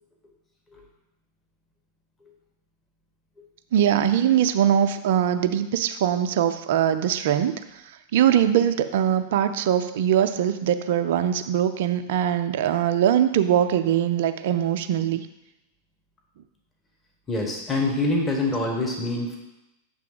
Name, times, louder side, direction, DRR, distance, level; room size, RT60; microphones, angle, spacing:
voice 1, 3.7-7.6 8.1-15.3, right 10 dB, 55° right, 10 dB, 0.4 m, -22 dB
voice 2, 17.3-19.4, left 2 dB, 15° left, 0 dB, 1.1 m, -25 dB
6.8 x 3.3 x 4.9 m, 0.93 s
figure-of-eight pair, 90°, 0 cm